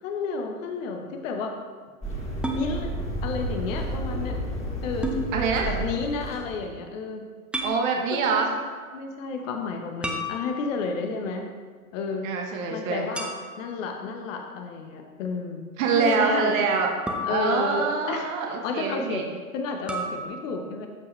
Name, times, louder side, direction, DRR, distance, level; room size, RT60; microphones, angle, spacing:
voice 1, 0.0-1.6 2.6-2.9 3.2-4.3 4.8-5.2 5.6-7.2 7.6-7.7 8.1-8.3 8.9-11.4 11.9-12.3 12.7-16.5 17.2-19.3 19.5-20.9, left 4 dB, 60° left, 3 dB, 1.2 m, -31 dB
sound 1, 2.0-6.7, right 1 dB, 15° left, 2.1 m, -31 dB
sound 2, 2.4-2.7 5.0-5.2 7.5-7.8 10.0-10.9 13.1-13.8 17.1-18.0 19.9-20.3, equal, ahead, 0.7 m, -31 dB
voice 2, 5.3-5.7 7.6-8.5 12.2-13.0 15.8-16.9 17.3-19.2, right 5 dB, 65° right, 1 dB, 1.3 m, -25 dB
14.0 x 4.8 x 3.2 m, 1.5 s
hypercardioid pair, 105°, 43 cm